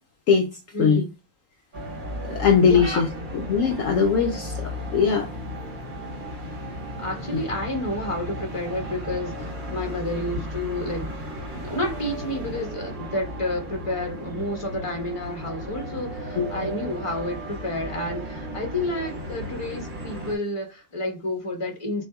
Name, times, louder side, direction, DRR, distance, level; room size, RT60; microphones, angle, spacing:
voice 1, 0.7-1.1 2.6-3.0 7.0-11.1 11.5-22.0, left 1 dB, 25° left, 1.2 m, -30 dB
sound 1, 1.7-20.3, equal, 40° right, 1.1 m, -34 dB
voice 2, 2.3-3.1 3.3-5.3 7.3-7.4 16.4-16.5, left 6 dB, 70° left, 0.9 m, -20 dB
6.2 x 2.6 x 2.3 m
omnidirectional pair, 1.5 m